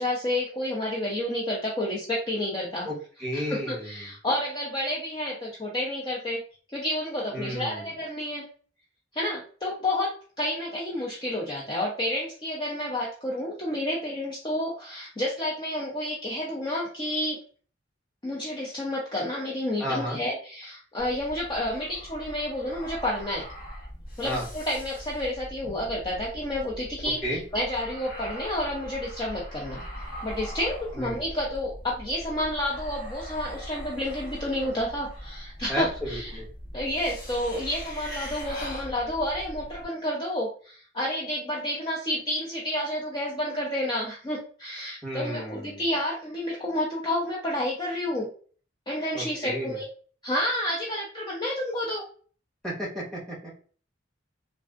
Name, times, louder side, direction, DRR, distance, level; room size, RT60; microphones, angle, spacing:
voice 1, 0.0-2.9 3.3-6.4 6.7-8.4 9.1-17.4 18.2-23.4 24.2-29.8 30.2-36.3 36.7-48.3 48.9-49.8 50.2-52.0, left 1 dB, 25° left, -4 dB, 0.5 m, -30 dB
voice 2, 2.8-4.1 7.3-7.8 19.8-20.2 24.2-24.5 27.2-27.4 30.9-31.2 35.7-36.5 45.0-45.8 49.1-49.8 52.6-53.5, equal, 5° left, -5 dB, 1.2 m, -32 dB
sound 1, 21.0-39.8, equal, 50° left, 1.2 m, -41 dB
3.3 x 2.5 x 2.4 m, 0.42 s
head